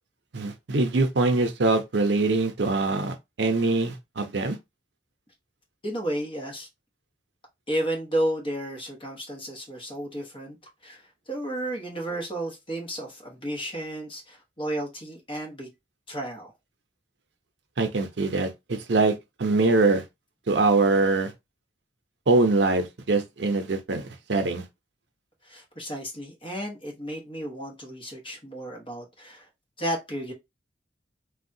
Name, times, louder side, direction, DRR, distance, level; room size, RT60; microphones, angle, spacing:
voice 1, 0.3-4.6 17.8-20.0 20.5-21.3 22.3-24.7, right 3 dB, 75° right, 0.6 m, -23 dB
voice 2, 5.8-6.7 7.7-10.6 10.8-15.7 16.1-16.5 25.4-29.5 29.8-30.3, right 1 dB, 30° left, 1.1 m, -32 dB
3.4 x 2.3 x 2.6 m
head